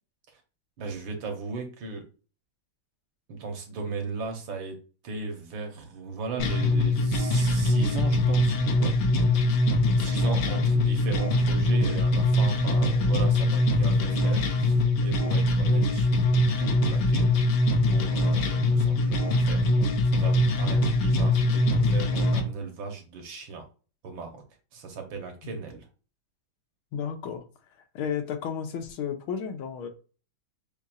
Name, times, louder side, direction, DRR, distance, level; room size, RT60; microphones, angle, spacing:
voice 1, 0.8-2.1 3.3-9.0 10.0-16.2 16.6-17.3 17.9-23.6 24.0-24.4 24.7-25.8, right 4 dB, 70° right, 3 dB, 1.7 m, -37 dB
sound 1, 6.4-22.4, left 1 dB, 70° left, 1.5 m, -23 dB
voice 2, 26.9-27.4 28.0-29.9, left 7 dB, 90° left, 5 dB, 1.7 m, -33 dB
7.0 x 2.7 x 2.5 m, 0.35 s
omnidirectional pair, 2.2 m